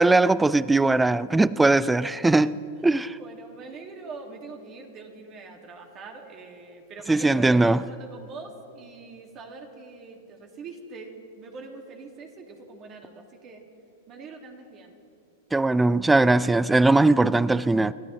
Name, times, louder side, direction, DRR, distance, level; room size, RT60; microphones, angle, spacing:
voice 1, 0.0-3.2 7.1-7.8 15.5-17.9, right 2 dB, 10° right, 0.3 m, -20 dB
voice 2, 2.9-13.6 14.1-15.0, right 4 dB, 35° right, 2.1 m, -43 dB
29.0 x 13.0 x 3.2 m
hypercardioid pair, 105°, 0 cm